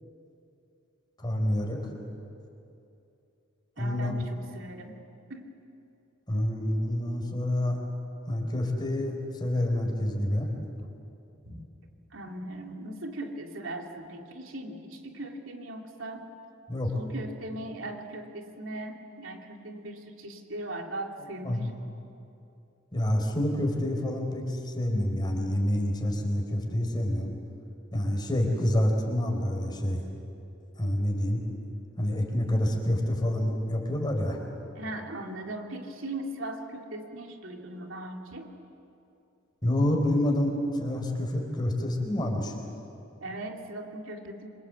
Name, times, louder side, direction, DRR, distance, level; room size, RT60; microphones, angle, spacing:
voice 1, 1.2-1.9 3.8-4.1 6.3-7.8 8.3-10.5 16.7-16.9 21.4-21.6 22.9-27.3 27.9-30.0 30.8-31.4 32.0-34.4 39.6-42.5, left 1 dB, 20° left, 1 dB, 4.5 m, -27 dB
voice 2, 3.8-5.0 5.3-5.5 11.4-11.6 12.1-16.3 16.9-21.8 34.7-38.5 43.2-44.5, right 1 dB, 85° right, 2 dB, 2.9 m, -39 dB
27.0 x 25.5 x 8.2 m, 2.7 s
head